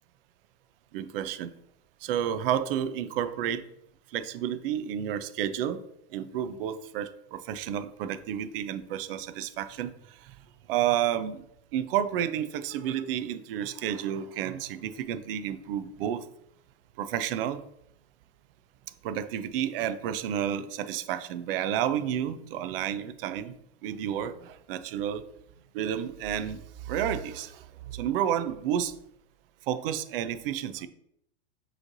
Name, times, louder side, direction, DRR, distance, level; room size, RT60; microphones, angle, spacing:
voice 1, 0.9-1.5 2.0-3.6 4.1-5.8 6.1-10.4 10.7-11.4 11.7-16.2 17.0-17.6 19.0-23.6 23.8-25.3 25.7-28.9 29.7-30.9, right 10 dB, 55° right, 12 dB, 0.5 m, -31 dB
6.1 x 3.2 x 2.6 m, 0.76 s
hypercardioid pair, 125°, 35 cm